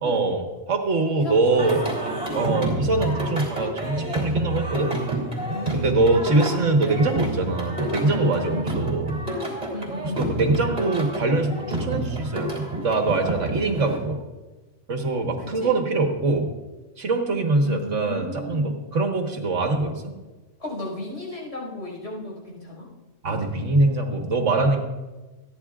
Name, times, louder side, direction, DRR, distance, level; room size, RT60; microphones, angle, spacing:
voice 1, 0.0-1.8 2.3-4.9 5.7-9.2 10.1-14.2 14.9-16.5 17.0-20.1 23.2-24.8, right 2 dB, 80° right, 3 dB, 1.7 m, -23 dB
voice 2, 1.2-1.9 2.3-2.6 5.5-6.2 8.1-8.7 9.7-10.3 15.4-15.8 17.6-18.8 20.6-22.9, left 1 dB, 65° left, -3 dB, 5.5 m, -35 dB
Singing, 1.6-14.0, right 1 dB, 35° right, 3.3 m, -29 dB
28.0 x 10.0 x 2.4 m, 1.2 s
omnidirectional pair, 1.3 m